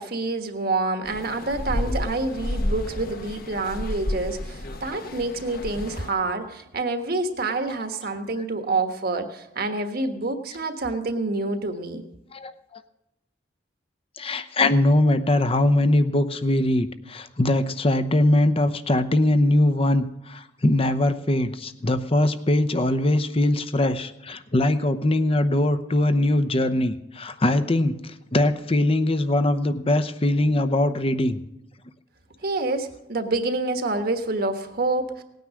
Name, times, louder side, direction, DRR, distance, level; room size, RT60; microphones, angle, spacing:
voice 1, 0.0-12.0 32.4-35.2, right 2 dB, 55° right, 7 dB, 1.4 m, -27 dB
sound 1, 1.0-6.1, left 1 dB, 50° left, 1.1 m, -31 dB
voice 2, 12.3-12.8 14.2-31.4, left 1 dB, 30° left, 11 dB, 0.8 m, -22 dB
18.0 x 9.3 x 6.3 m, 0.88 s
head